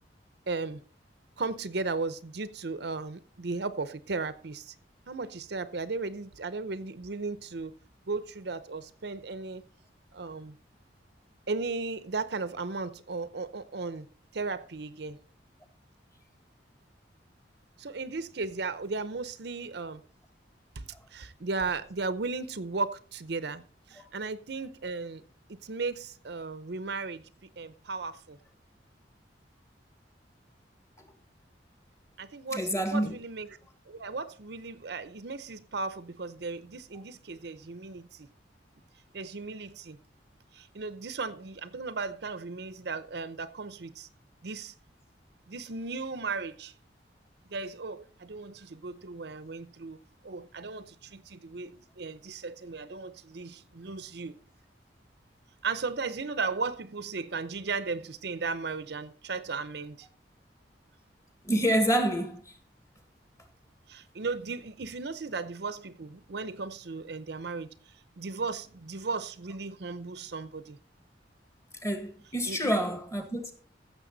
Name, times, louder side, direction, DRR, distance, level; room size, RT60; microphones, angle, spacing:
voice 1, 0.5-0.8 1.4-4.7 5.1-7.8 8.1-9.6 10.1-10.6 11.5-14.1 14.3-15.2 17.8-20.0 20.8-20.9 21.1-25.2 25.6-27.2 27.6-28.4 32.2-33.5 33.9-38.3 39.1-40.0 40.5-44.1 44.4-44.7 45.5-46.7 47.5-50.0 50.2-54.3 55.6-60.1 63.9-70.8 72.5-72.8, right 4 dB, 65° right, 0.7 m, -36 dB
voice 2, 32.5-33.1 61.4-62.4 71.8-73.5, equal, 15° left, 1.8 m, -27 dB
15.5 x 7.0 x 4.0 m
head